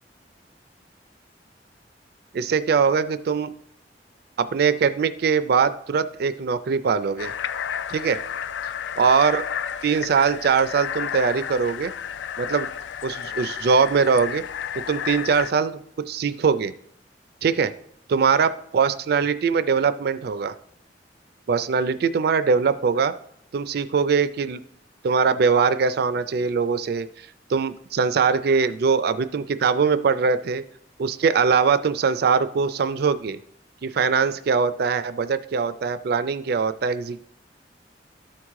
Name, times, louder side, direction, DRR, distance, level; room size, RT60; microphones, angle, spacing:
voice 1, 2.3-3.5 4.4-7.3 7.9-8.2 9.0-9.4 9.8-11.9 12.4-12.7 13.0-14.4 14.9-15.8 16.1-16.7 17.4-17.7 18.1-20.5 21.5-23.1 23.5-24.6 25.0-27.1 27.5-30.6 31.0-33.4 33.8-37.2, right 5 dB, 60° right, 13 dB, 0.4 m, -22 dB
sound 1, 7.2-15.5, left 8 dB, 85° left, 0.4 m, -32 dB
12.5 x 4.7 x 3.6 m, 0.71 s
head